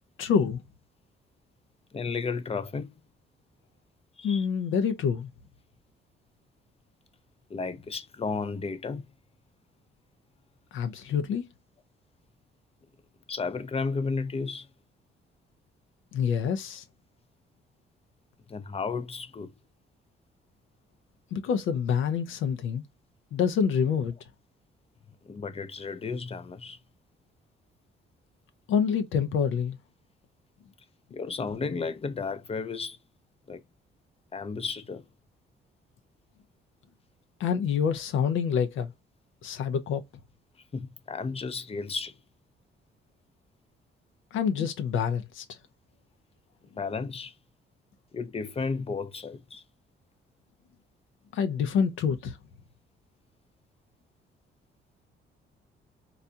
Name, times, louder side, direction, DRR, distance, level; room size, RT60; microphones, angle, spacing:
voice 1, 0.2-0.6 4.2-5.3 10.7-11.4 16.1-16.8 21.3-22.8 23.3-24.1 28.7-29.8 37.4-38.9 39.4-40.0 44.3-45.4 51.3-52.4, left 7 dB, 85° left, 0.7 m, -27 dB
voice 2, 1.9-2.9 4.2-4.5 7.5-9.1 13.3-14.7 18.5-19.5 25.2-26.8 31.1-33.0 33.5-33.6 34.3-35.1 40.7-42.2 46.7-47.3 48.1-49.6, left 4 dB, 30° left, 0.6 m, -33 dB
4.0 x 2.3 x 2.7 m
cardioid pair, 90°, 20 cm